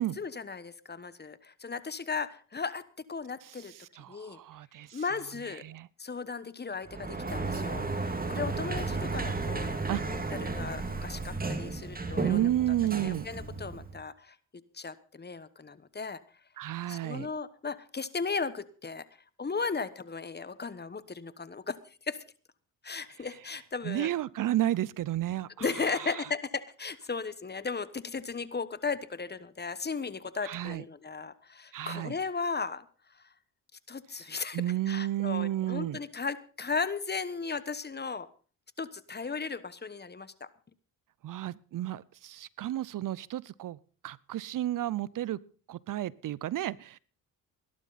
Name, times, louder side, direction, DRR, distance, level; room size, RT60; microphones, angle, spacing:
voice 1, 0.0-2.8 3.1-3.7 4.1-4.4 4.9-5.6 6.0-12.5 13.0-14.4 14.7-16.2 16.9-19.0 19.4-21.8 22.1-22.2 22.8-24.1 25.6-32.9 33.2-33.3 33.9-38.3 38.8-40.5, left 4 dB, 25° left, 15 dB, 1.2 m, -36 dB
voice 2, 3.4-5.0 5.6-5.9 9.9-10.1 12.2-13.2 16.6-17.3 23.8-26.2 30.4-30.8 31.7-32.2 34.2-34.3 34.5-36.0 41.2-43.8 44.0-45.4 45.7-47.0, right 13 dB, 60° right, 22 dB, 0.6 m, -32 dB
Sliding door, 6.9-14.0, right 3 dB, 25° right, 2.3 m, -34 dB
18.0 x 12.0 x 4.1 m, 0.41 s
supercardioid pair, 65°, 37 cm